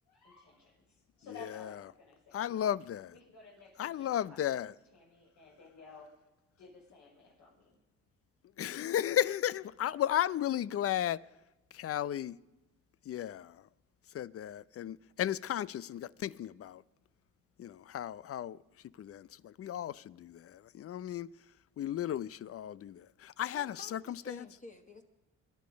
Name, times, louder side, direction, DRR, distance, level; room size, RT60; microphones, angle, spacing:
voice 1, 0.1-2.5 3.1-6.2 6.6-7.8, left 4 dB, 65° left, 5.9 m, -55 dB
voice 2, 2.3-3.1 3.8-4.7 8.6-11.2 11.7-12.4 13.1-13.6 14.1-16.8 17.6-18.6 19.0-21.3 21.8-24.4, left 11 dB, 50° left, 0.5 m, -34 dB
voice 3, 23.5-25.0, left 1 dB, 25° left, 1.5 m, -51 dB
25.5 x 10.5 x 5.2 m
cardioid pair, 90°, 30 cm